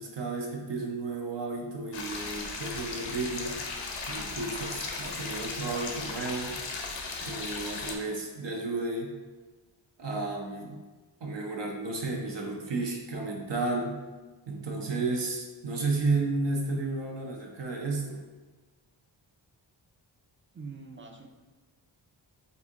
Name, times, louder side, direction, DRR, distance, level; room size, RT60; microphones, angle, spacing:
voice 1, 0.0-3.6 4.1-6.5 7.3-9.2 10.0-10.8 11.2-14.0 14.5-18.2, right 3 dB, 65° right, -1 dB, 0.8 m, -32 dB
sound 1, 1.9-8.0, left 3 dB, 70° left, 0.7 m, -36 dB
voice 2, 20.5-21.3, right 4 dB, 30° right, 4 dB, 0.3 m, -44 dB
4.3 x 2.6 x 3.5 m, 1.3 s
wide cardioid pair, 80°, 46 cm